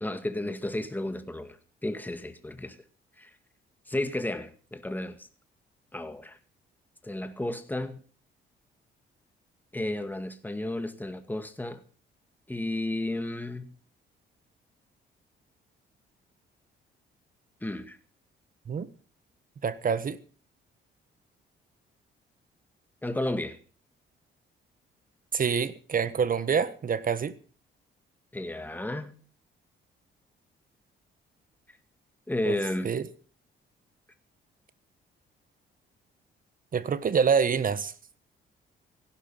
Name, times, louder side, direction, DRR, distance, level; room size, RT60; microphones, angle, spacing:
voice 1, 0.0-1.6 1.8-2.8 3.2-3.3 3.9-5.2 5.9-6.4 7.0-8.0 9.7-11.8 12.5-13.7 17.6-18.0 23.0-23.6 28.3-29.1 32.3-32.9, left 1 dB, 10° left, 2.0 m, -32 dB
voice 2, 19.6-20.2 25.3-27.3 32.4-32.6 32.8-33.0 36.7-37.9, right 6 dB, 45° right, 1.4 m, -26 dB
16.0 x 12.0 x 5.7 m
cardioid pair, 90°, 20 cm